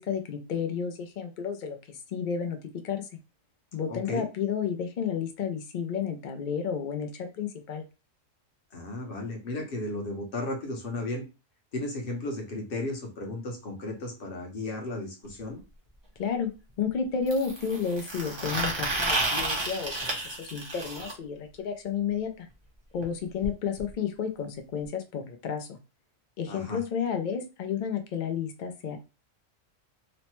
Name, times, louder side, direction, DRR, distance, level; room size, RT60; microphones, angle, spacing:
voice 1, 0.0-2.6 2.8-3.1 3.7-7.8 16.2-16.5 16.8-22.5 22.9-25.8 26.4-29.0, left 7 dB, 80° left, 6 dB, 0.4 m, -31 dB
voice 2, 3.9-4.3 8.7-11.2 11.7-15.6 26.5-26.8, left 2 dB, 50° left, 2 dB, 0.9 m, -34 dB
sound 1, 15.3-15.4 17.3-21.1 23.0-23.1 23.4-23.5 23.8-23.9 24.8-24.9, right 2 dB, 30° right, 0.6 m, -31 dB
3.1 x 2.1 x 2.9 m, 0.29 s
omnidirectional pair, 1.4 m